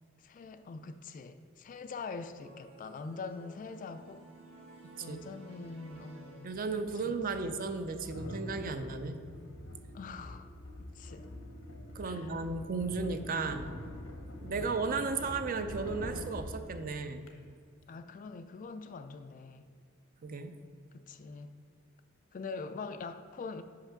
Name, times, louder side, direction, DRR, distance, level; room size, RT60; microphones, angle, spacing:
voice 1, 0.2-4.3 5.0-6.6 6.9-7.6 9.9-10.5 10.8-11.3 12.0-12.4 14.4-14.7 17.9-19.7 20.9-21.6 22.3-23.6, left 4 dB, 40° left, 10 dB, 0.3 m, -44 dB
sound 1, 2.4-7.1, right 3 dB, 65° right, 1.7 m, -54 dB
voice 2, 4.8-5.2 6.4-9.2 11.9-13.7 14.4-17.3 20.2-20.5, right 4 dB, 40° right, 8 dB, 0.4 m, -35 dB
sound 2, 6.7-17.3, left 1 dB, 80° left, 1.0 m, -45 dB
5.7 x 5.5 x 5.7 m, 2.2 s
head